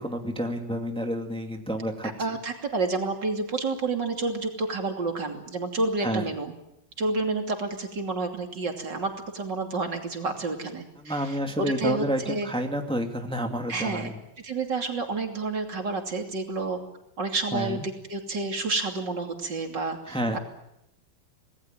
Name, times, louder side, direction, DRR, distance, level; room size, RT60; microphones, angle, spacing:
voice 1, 0.0-2.1 6.0-6.3 11.0-14.2 17.5-17.8 20.1-20.4, equal, 5° left, 4 dB, 2.2 m, -29 dB
voice 2, 2.2-6.5 7.0-12.5 13.7-14.1 14.4-16.8 17.2-20.4, right 3 dB, 70° right, 4 dB, 3.6 m, -29 dB
26.5 x 19.0 x 8.9 m, 0.83 s
omnidirectional pair, 2.0 m